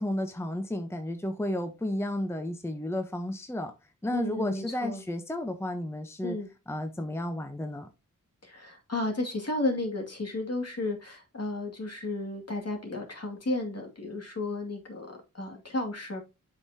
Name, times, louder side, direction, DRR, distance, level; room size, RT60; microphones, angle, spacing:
voice 1, 0.0-3.7 4.0-6.4 6.7-7.9, left 1 dB, 10° left, 0.8 m, -32 dB
voice 2, 4.1-5.0 6.2-6.5 8.4-16.2, left 2 dB, 50° left, 2.3 m, -33 dB
7.8 x 5.7 x 2.8 m
cardioid pair, 55°, 32 cm